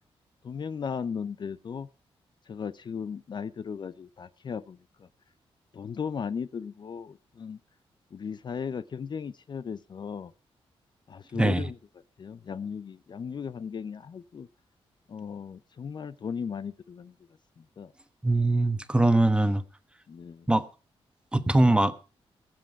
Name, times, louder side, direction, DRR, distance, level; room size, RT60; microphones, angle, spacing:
voice 1, 0.4-1.9 2.5-5.1 5.7-7.6 8.1-10.3 11.1-11.8 12.2-14.5 15.1-17.1 17.8-17.9 20.1-20.5, left 6 dB, 50° left, 0.6 m, -36 dB
voice 2, 18.2-19.6 20.5-20.6 21.3-21.9, right 2 dB, 10° right, 1.2 m, -22 dB
21.0 x 7.8 x 4.7 m
cardioid pair, 95°, 10 cm